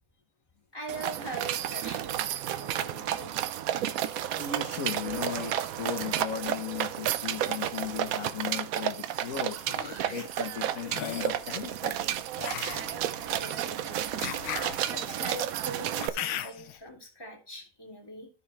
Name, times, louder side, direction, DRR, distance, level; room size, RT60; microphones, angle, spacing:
voice 1, 0.7-3.4 13.2-14.0 14.9-18.3, right 1 dB, 10° left, -1 dB, 2.3 m, -42 dB
sound 1, 0.9-16.1, right 11 dB, 85° right, 0.7 m, -32 dB
voice 2, 4.4-9.6 10.1-12.2, left 7 dB, 50° left, 0 dB, 1.3 m, -36 dB
sound 2, 9.3-10.5 15.3-15.4, right 3 dB, 30° right, 0.8 m, -47 dB
sound 3, 9.5-10.0 10.8-11.4 12.4-16.8, left 11 dB, 85° left, 1.5 m, -38 dB
12.5 x 5.5 x 3.3 m, 0.36 s
omnidirectional pair, 2.1 m